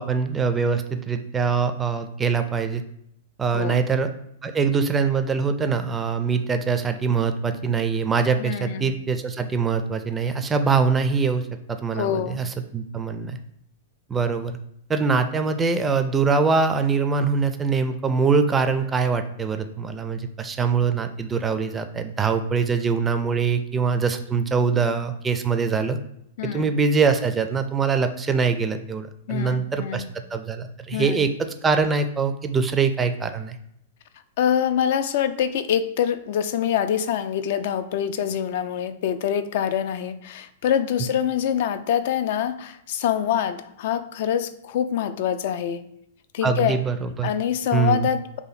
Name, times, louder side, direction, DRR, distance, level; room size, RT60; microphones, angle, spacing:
voice 1, 0.0-2.8 3.4-4.1 4.4-13.4 14.1-14.6 14.9-26.0 26.5-33.6 46.4-47.3 47.7-48.1, right 5 dB, 15° right, 8 dB, 0.4 m, -23 dB
voice 2, 8.4-9.0 11.9-12.4 26.4-26.7 29.3-30.1 30.9-31.3 34.4-45.8 46.3-46.8 47.2-48.4, left 9 dB, 55° left, 11 dB, 0.3 m, -25 dB
2.8 x 2.5 x 4.0 m, 0.74 s
hypercardioid pair, 105°, 0 cm